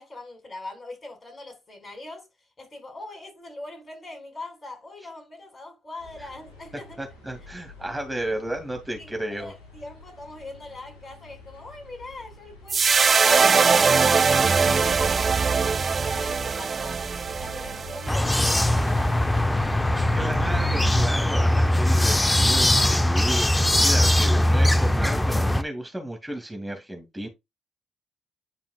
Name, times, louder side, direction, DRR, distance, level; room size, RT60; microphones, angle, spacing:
voice 1, 0.0-2.3 2.6-7.0 7.8-8.0 9.0-9.1 9.4-15.2 15.7-17.0 17.4-19.5, left 2 dB, 40° left, 5.2 m, -42 dB
sound 1, 6.0-21.1, left 2 dB, 80° left, 4.2 m, -44 dB
voice 2, 7.0-9.5 20.1-27.3, right 1 dB, 10° right, 2.1 m, -33 dB
sound 2, 12.7-19.1, right 5 dB, 45° right, 0.4 m, -22 dB
sound 3, 18.1-25.6, left 1 dB, 10° left, 0.7 m, -21 dB
10.5 x 5.1 x 2.3 m
hypercardioid pair, 45°, 0 cm